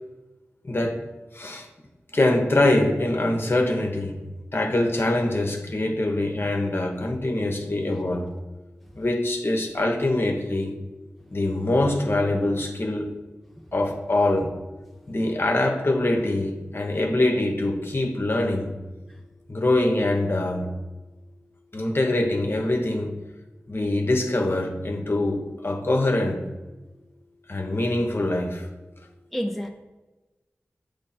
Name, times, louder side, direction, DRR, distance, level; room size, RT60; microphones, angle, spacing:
voice 1, 0.6-1.0 1.3-1.7 2.1-4.2 4.5-8.3 9.0-10.7 11.3-13.1 13.7-14.5 15.1-18.7 19.5-20.7 21.7-23.1 23.7-26.4 27.5-28.7, left 1 dB, 50° left, 3 dB, 0.9 m, -24 dB
voice 2, 29.3-29.7, equal, ahead, 3 dB, 0.5 m, -30 dB
7.4 x 3.2 x 4.2 m, 1.1 s
wide cardioid pair, 50°, 5 cm